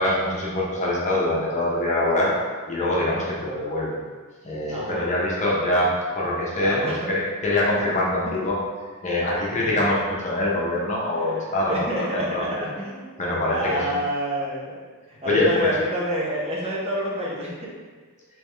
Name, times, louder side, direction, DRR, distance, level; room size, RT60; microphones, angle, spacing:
voice 1, 0.0-2.3 2.7-4.0 4.4-8.6 9.0-12.4 13.2-13.9 15.2-15.7, left 1 dB, 30° left, -5 dB, 0.8 m, -24 dB
voice 2, 4.6-5.0 6.6-7.0 9.2-9.3 9.6-9.8 11.0-14.8 15.1-17.7, right 1 dB, 30° right, -5 dB, 0.8 m, -29 dB
3.4 x 3.1 x 3.3 m, 1.4 s
head